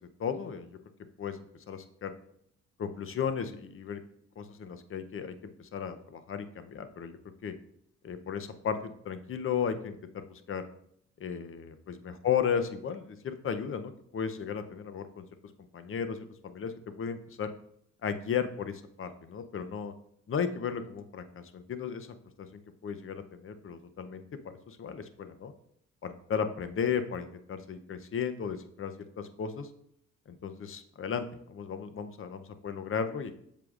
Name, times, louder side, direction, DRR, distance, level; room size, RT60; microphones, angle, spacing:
voice 1, 0.2-0.8 1.2-1.4 1.7-2.1 2.8-4.0 4.4-7.5 8.0-10.6 11.2-15.2 15.7-17.5 18.0-19.9 20.3-24.2 24.7-25.5 26.0-29.7 30.3-33.3, left 7 dB, 45° left, 10 dB, 0.7 m, -35 dB
7.7 x 6.8 x 2.5 m, 0.70 s
cardioid pair, 90°, 30 cm